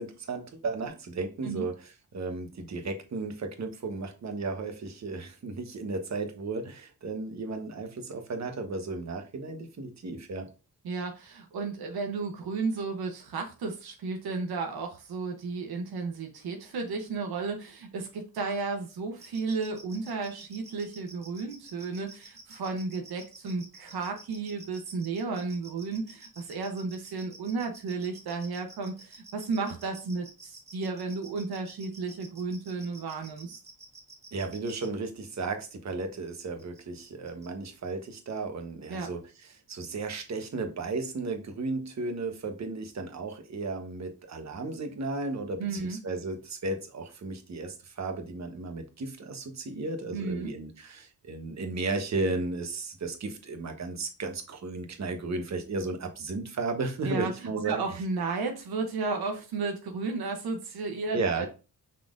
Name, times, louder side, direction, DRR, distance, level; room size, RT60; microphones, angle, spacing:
voice 1, 0.0-1.7 2.1-10.5 34.3-39.2 39.7-57.8 61.1-61.5, right 3 dB, 45° right, 5 dB, 1.1 m, -34 dB
voice 2, 10.8-33.6 38.9-39.1 45.6-46.0 50.1-50.5 57.0-61.5, right 4 dB, 85° right, 3 dB, 1.0 m, -33 dB
sound 1, 19.2-34.9 36.3-36.8 37.0-37.5, right 3 dB, 15° right, 1.6 m, -50 dB
5.7 x 3.7 x 2.5 m, 0.31 s
cardioid pair, 80°, 36 cm